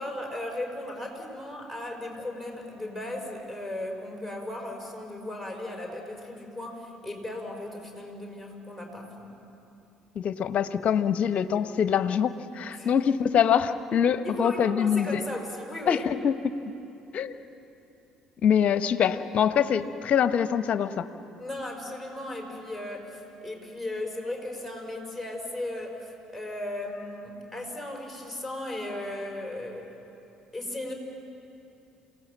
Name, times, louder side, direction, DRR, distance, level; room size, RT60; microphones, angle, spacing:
voice 1, 0.0-9.3 12.8-13.0 14.2-16.1 21.4-29.9 30.5-30.9, left 1 dB, 5° right, 0 dB, 5.6 m, -36 dB
voice 2, 10.1-15.2 15.9-16.5 17.1-17.3 18.4-21.1, left 8 dB, 50° left, 12 dB, 1.0 m, -24 dB
28.0 x 18.0 x 7.6 m, 2.9 s
figure-of-eight pair, 55°, 3 cm